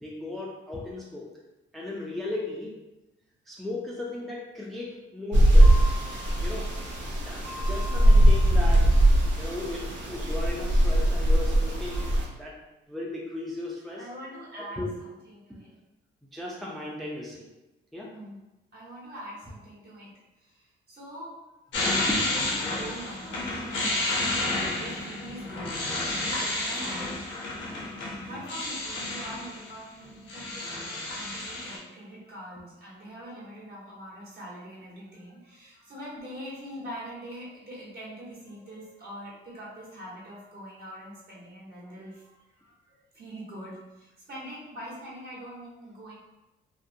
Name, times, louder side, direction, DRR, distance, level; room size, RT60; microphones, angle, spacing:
voice 1, 0.0-1.3 1.7-2.8 3.5-5.8 6.4-6.7 7.2-8.9 9.4-12.5 12.9-14.1 14.6-14.9 16.3-17.5 17.9-18.1 22.1-22.2 23.9-24.0 27.7-28.4, left 2 dB, ahead, -4 dB, 0.4 m, -36 dB
sound 1, 5.3-12.2, right 1 dB, 70° right, 0.7 m, -21 dB
voice 2, 7.8-8.1 13.9-15.7 18.1-18.4 18.7-20.1 20.4-21.4 21.7-27.1 28.2-46.1, equal, 50° right, -6 dB, 1.2 m, -43 dB
sound 2, 21.7-29.7 30.0-31.8, left 2 dB, 70° left, 0.7 m, -31 dB
2.5 x 2.1 x 2.6 m, 0.99 s
cardioid pair, 90°, 20 cm